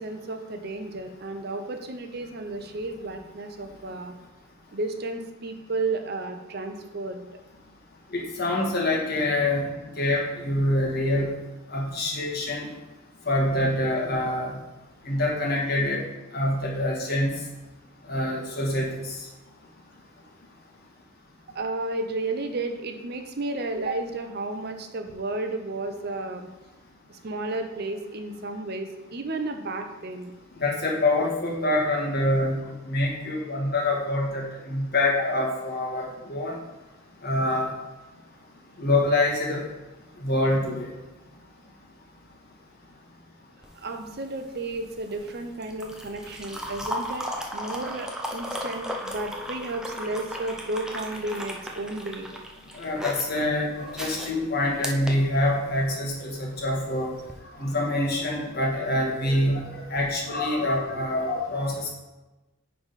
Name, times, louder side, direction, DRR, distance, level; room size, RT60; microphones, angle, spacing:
voice 1, 0.0-4.1 4.7-7.3 21.5-26.5 27.1-30.3 43.8-47.3 47.5-52.3 54.0-54.1, right 2 dB, 50° right, 6 dB, 0.6 m, -32 dB
voice 2, 8.1-9.7 10.0-11.3 11.7-12.7 13.3-14.5 15.0-16.0 16.3-17.3 18.1-19.1 30.6-32.6 32.9-36.5 37.2-37.7 38.8-39.6 40.2-40.9 52.7-57.1 57.6-61.9, left 1 dB, 50° left, -2 dB, 1.5 m, -25 dB
sound 1, 43.6-55.9 57.2-57.4, equal, 5° right, 0.5 m, -36 dB
9.7 x 3.4 x 4.1 m, 1.1 s
head